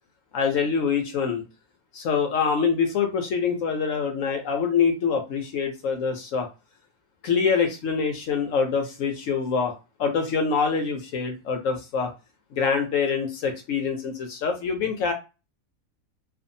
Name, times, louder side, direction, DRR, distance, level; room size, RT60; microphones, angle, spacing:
voice 1, 0.3-1.4 1.9-6.5 7.2-9.7 10.0-12.1 12.5-15.1, left 6 dB, 70° left, 4 dB, 0.9 m, -25 dB
2.6 x 2.4 x 2.6 m, 0.29 s
omnidirectional pair, 1.5 m